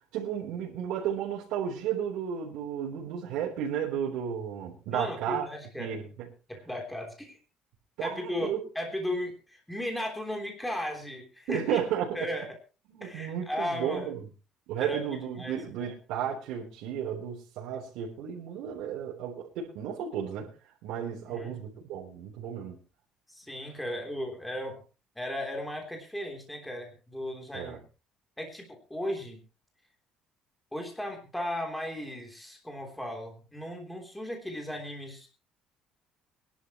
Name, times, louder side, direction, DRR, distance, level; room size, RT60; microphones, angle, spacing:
voice 1, 0.1-5.5 5.8-6.3 8.0-8.6 11.5-12.3 12.9-14.2 14.7-20.5 20.8-22.8 27.5-27.8, right 9 dB, 80° right, 3.6 m, -33 dB
voice 2, 4.9-6.0 6.5-7.4 8.0-11.8 12.1-12.5 13.0-14.1 14.8-15.9 21.3-21.6 23.3-24.8 25.1-27.8 28.4-29.4 30.7-35.3, left 1 dB, 5° left, 3.3 m, -36 dB
23.5 x 11.5 x 3.0 m
cardioid pair, 160°, 0 cm